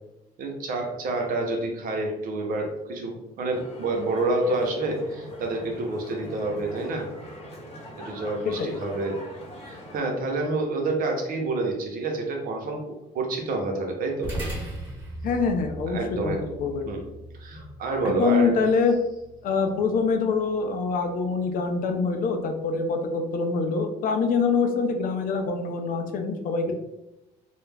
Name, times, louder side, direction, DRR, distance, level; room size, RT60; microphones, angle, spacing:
voice 1, 0.4-7.1 8.0-9.2 9.7-14.3 15.9-16.4 16.9-17.0 17.4-18.5, right 2 dB, 55° right, 1 dB, 0.6 m, -28 dB
sound 1, 3.5-10.0, equal, 35° left, 0.9 m, -42 dB
sound 2, 14.2-22.9, right 1 dB, 10° right, 1.0 m, -40 dB
voice 2, 15.2-16.0 16.2-16.9 18.0-19.0 19.4-26.7, left 4 dB, 55° left, 5 dB, 0.4 m, -25 dB
2.3 x 2.0 x 3.2 m, 0.94 s
cardioid pair, 110°, 17 cm